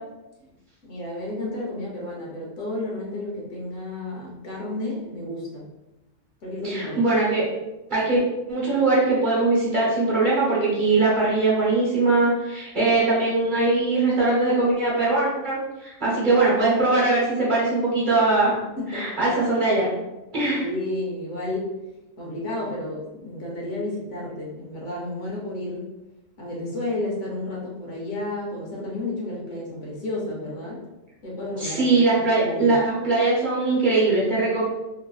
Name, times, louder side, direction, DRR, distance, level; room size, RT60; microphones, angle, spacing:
voice 1, 0.8-5.7 6.4-7.0 18.4-19.1 20.6-21.7 22.2-25.8 26.4-30.8 31.2-32.8, left 2 dB, 70° left, -3 dB, 1.1 m, -32 dB
voice 2, 6.6-7.4 7.9-8.2 8.5-18.5 18.9-19.9 20.3-20.6 31.6-34.6, right 3 dB, 40° right, -6 dB, 1.0 m, -21 dB
3.1 x 2.5 x 2.3 m, 1.0 s
omnidirectional pair, 1.4 m